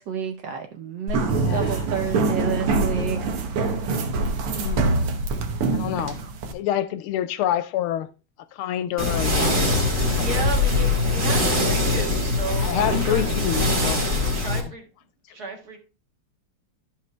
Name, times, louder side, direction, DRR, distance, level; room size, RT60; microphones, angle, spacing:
voice 1, 0.0-3.2 6.2-6.3, right 7 dB, 65° right, 1.2 m, -30 dB
sound 1, 1.1-6.5, right 3 dB, 80° right, 1.9 m, -24 dB
voice 2, 1.3-1.8 4.5-4.9 5.7-6.2 6.5-8.1 8.6-9.8 10.1-10.3 12.6-14.3, left 11 dB, 80° left, 1.4 m, -27 dB
sound 2, 9.0-14.6, left 2 dB, 25° right, 1.4 m, -22 dB
voice 3, 10.2-13.2 14.0-14.9 15.3-15.8, right 3 dB, 45° right, 2.0 m, -34 dB
12.0 x 5.2 x 3.2 m
omnidirectional pair, 2.4 m